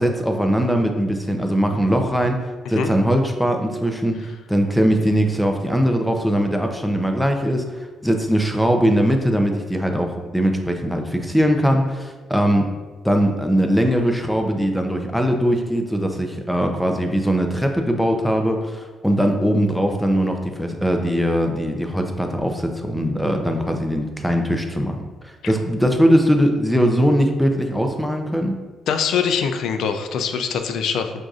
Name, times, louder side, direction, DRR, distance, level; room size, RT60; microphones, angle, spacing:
voice 1, 0.0-2.4 2.7-12.7 13.0-28.5, equal, ahead, 3 dB, 0.5 m, -20 dB
voice 2, 28.9-31.1, left 6 dB, 75° left, 7 dB, 0.4 m, -23 dB
6.1 x 2.6 x 2.4 m, 1.3 s
cardioid pair, 90°, 0 cm